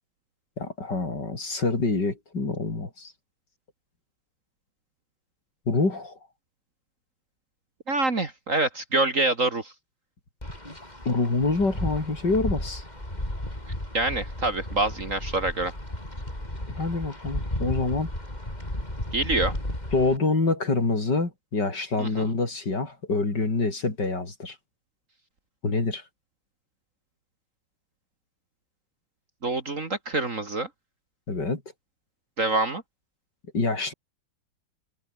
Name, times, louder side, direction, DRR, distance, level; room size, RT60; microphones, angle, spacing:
voice 1, 0.6-3.1 5.7-6.2 11.1-12.8 16.7-18.1 19.9-24.6 25.6-26.0 31.3-31.6 33.5-33.9, left 3 dB, 55° left, 5.2 m, -26 dB
voice 2, 7.9-9.7 13.9-15.7 19.1-19.5 22.0-22.3 29.4-30.7 32.4-32.8, right 2 dB, 40° right, 2.6 m, -26 dB
Wind, 10.4-20.2, left 1 dB, 20° left, 7.2 m, -34 dB
omnidirectional pair, 2.3 m